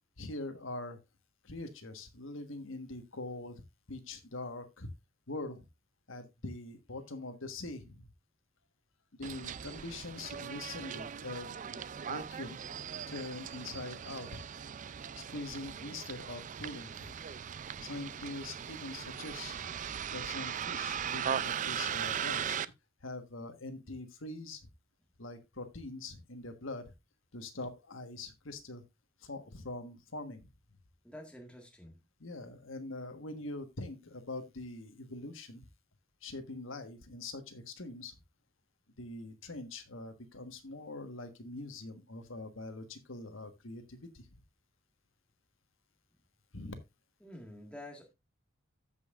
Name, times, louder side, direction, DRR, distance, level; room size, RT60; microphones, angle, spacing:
voice 1, 0.2-1.0 1.4-3.6 3.9-4.9 5.3-5.6 6.1-8.0 9.2-11.8 12.1-12.6 13.1-14.3 15.3-17.1 17.8-19.7 20.1-22.6 23.0-24.6 25.2-26.8 27.3-28.8 29.2-30.4 32.2-35.6 36.2-38.1 39.0-44.2 46.5-46.7, left 2 dB, 70° left, 1.4 m, -43 dB
Bus, 9.2-22.6, right 8 dB, 40° right, 0.4 m, -39 dB
voice 2, 31.0-32.0 47.2-48.1, left 1 dB, 5° left, 1.7 m, -48 dB
15.5 x 5.5 x 2.5 m
head